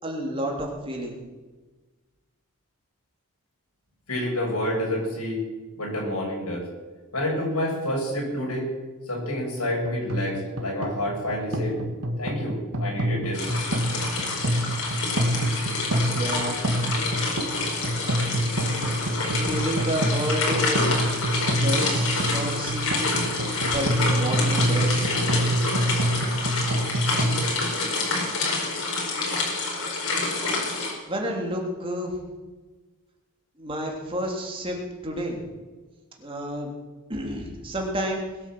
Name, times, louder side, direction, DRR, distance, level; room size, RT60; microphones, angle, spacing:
voice 1, 0.0-1.2 16.1-16.6 19.4-20.9 21.5-23.0 23.7-25.1 31.1-32.2 33.6-34.8 35.0-35.4 36.2-36.7 37.1-38.2, equal, 25° right, 0 dB, 3.2 m, -30 dB
voice 2, 4.1-5.4 5.8-6.7 7.1-8.7 9.1-11.8 12.2-13.5, left 1 dB, 90° left, -2 dB, 7.5 m, -28 dB
sound 1, 9.8-27.4, right 1 dB, 80° right, 2.3 m, -27 dB
sound 2, 13.3-30.9, left 3 dB, 70° left, 4.9 m, -27 dB
21.0 x 8.7 x 7.8 m, 1.3 s
head